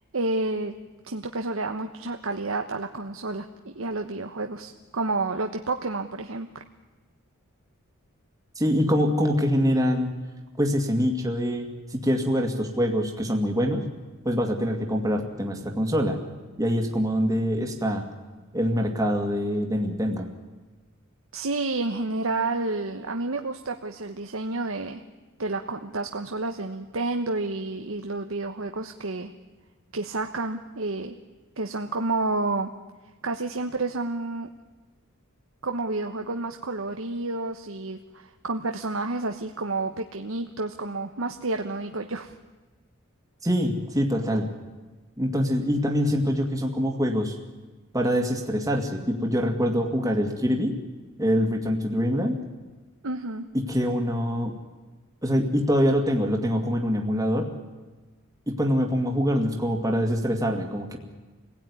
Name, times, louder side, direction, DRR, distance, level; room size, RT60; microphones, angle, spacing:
voice 1, 0.1-0.7 1.0-6.5 21.3-25.0 25.4-29.3 29.9-31.2 31.6-32.7 33.2-34.5 35.6-42.3 53.0-53.4, right 2 dB, 65° right, 5 dB, 1.1 m, -30 dB
voice 2, 8.6-10.1 10.6-13.9 14.2-16.2 16.6-18.1 18.5-20.3 43.4-44.5 45.2-47.4 47.9-50.7 51.2-52.4 53.5-54.5 55.2-57.5 58.5-61.0, equal, 15° right, 1 dB, 2.3 m, -24 dB
26.5 x 17.0 x 9.8 m, 1.3 s
head